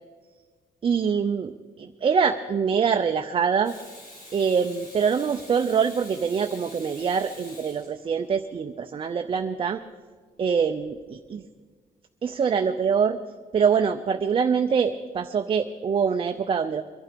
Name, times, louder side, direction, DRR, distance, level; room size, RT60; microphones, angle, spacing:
voice 1, 0.8-3.7 4.3-9.8 10.4-11.0 11.3-11.4 12.2-13.2 13.5-16.8, right 6 dB, 35° right, 6 dB, 0.5 m, -24 dB
Water tap faucet / Sink (filling or washing), 3.6-8.4 10.8-11.0, left 1 dB, 80° left, 6.7 m, -46 dB
22.5 x 12.0 x 5.1 m, 1.5 s
wide cardioid pair, 145°, 15 cm